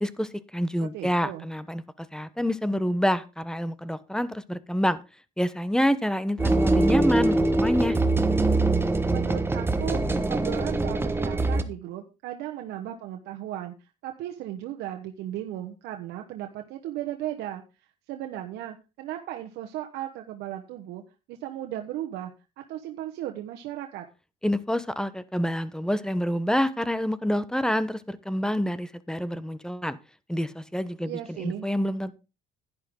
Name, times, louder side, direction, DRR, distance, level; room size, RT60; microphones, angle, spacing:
voice 1, 0.0-5.0 5.4-8.0 24.4-30.0 30.3-32.1, equal, 5° left, 16 dB, 1.0 m, -27 dB
voice 2, 0.8-1.5 9.1-17.6 18.1-21.0 21.3-22.3 22.6-24.0 31.0-31.7, right 12 dB, 85° right, 4 dB, 1.2 m, -36 dB
sound 1, 6.4-11.6, right 2 dB, 15° right, 1.3 m, -23 dB
11.0 x 10.5 x 3.7 m, 0.29 s
cardioid pair, 110°, 17 cm